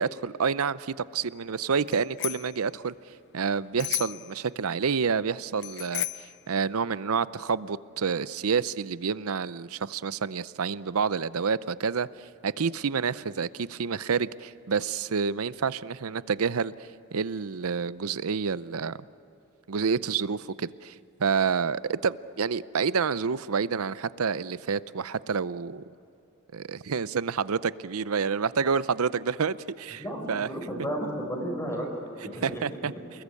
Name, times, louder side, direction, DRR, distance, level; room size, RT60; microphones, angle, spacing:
voice 1, 0.0-2.9 3.3-19.0 19.7-20.9 21.2-25.8 26.5-30.0 30.3-30.5 32.4-32.9, right 5 dB, 85° right, 0.6 m, -28 dB
Bicycle bell, 1.9-2.6 3.8-4.3 5.6-6.4, left 14 dB, 55° left, 0.8 m, -33 dB
voice 2, 30.0-31.9 32.2-32.9, equal, 15° left, 4.9 m, -33 dB
29.0 x 21.0 x 8.5 m
head